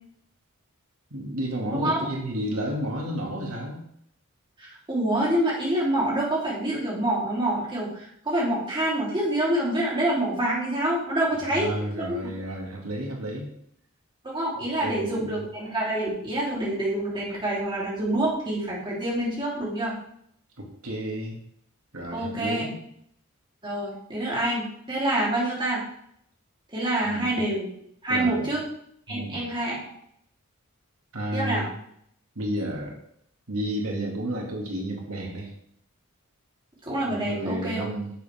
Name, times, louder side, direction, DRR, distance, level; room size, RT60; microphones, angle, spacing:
voice 1, 1.1-3.8 11.3-13.5 14.5-15.4 20.6-21.4 21.9-22.8 27.0-27.4 28.1-28.5 29.1-29.5 31.1-31.7 32.4-33.0 33.5-35.5 37.1-38.1, right 1 dB, 90° right, -1 dB, 2.2 m, -32 dB
voice 2, 4.6-11.7 12.0-12.2 14.2-20.0 22.1-22.7 23.6-25.8 26.7-27.7 28.0-28.6 29.1-29.8 31.3-31.7 36.8-37.8, right 1 dB, 20° right, -6 dB, 3.5 m, -26 dB
10.0 x 7.5 x 3.6 m, 0.70 s
head